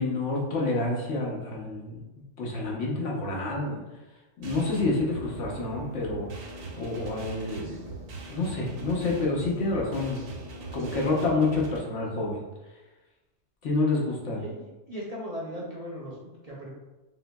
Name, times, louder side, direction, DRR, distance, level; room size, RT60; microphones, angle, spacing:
voice 1, 0.0-2.0 2.4-3.8 4.4-6.3 6.8-7.9 8.3-10.2 10.7-12.4 13.6-14.4, left 2 dB, 80° left, -3 dB, 1.2 m, -28 dB
sound 1, 4.4-11.8, right 2 dB, 90° right, 1.0 m, -40 dB
voice 2, 14.3-16.7, equal, 40° right, -5 dB, 0.6 m, -38 dB
5.3 x 2.0 x 2.2 m, 1.1 s
omnidirectional pair, 1.2 m